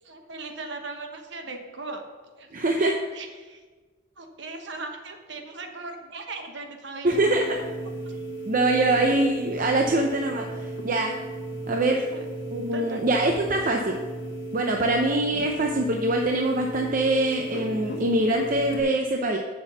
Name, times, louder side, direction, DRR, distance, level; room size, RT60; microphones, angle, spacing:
voice 1, 0.0-2.0 2.4-2.5 2.8-3.6 4.2-7.2 7.6-7.7 8.7-9.0 12.1-12.2 12.7-13.0, right 3 dB, 60° right, 4 dB, 1.2 m, -38 dB
voice 2, 2.5-2.9 7.0-7.6 8.5-11.1 11.7-12.0 12.5-14.0 14.5-19.4, right 2 dB, 45° right, 2 dB, 0.6 m, -24 dB
sound 1, 7.1-18.8, right 2 dB, 60° left, 1.6 m, -35 dB
7.1 x 6.2 x 6.8 m, 1.3 s
head